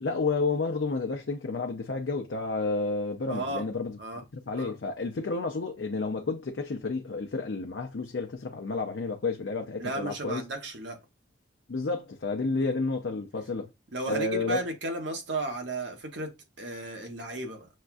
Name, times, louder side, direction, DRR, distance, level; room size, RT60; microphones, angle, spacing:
voice 1, 0.0-4.0 4.3-10.4 11.7-13.7 14.1-14.6, left 3 dB, 80° left, 0.6 m, -31 dB
voice 2, 3.3-3.6 4.0-4.2 4.6-4.8 9.8-11.0 12.5-12.8 13.9-17.7, right 2 dB, 80° right, 1.1 m, -34 dB
6.4 x 2.4 x 2.5 m
head